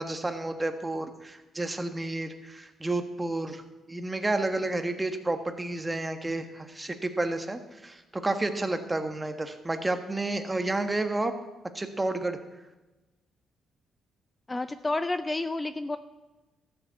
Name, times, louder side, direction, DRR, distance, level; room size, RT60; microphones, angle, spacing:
voice 1, 0.0-3.6 3.9-11.3 11.7-12.4, right 2 dB, 15° right, 7 dB, 1.3 m, -30 dB
voice 2, 14.5-16.0, left 2 dB, 20° left, 11 dB, 0.5 m, -30 dB
13.0 x 7.6 x 8.0 m, 1.1 s
cardioid pair, 90°, 0 cm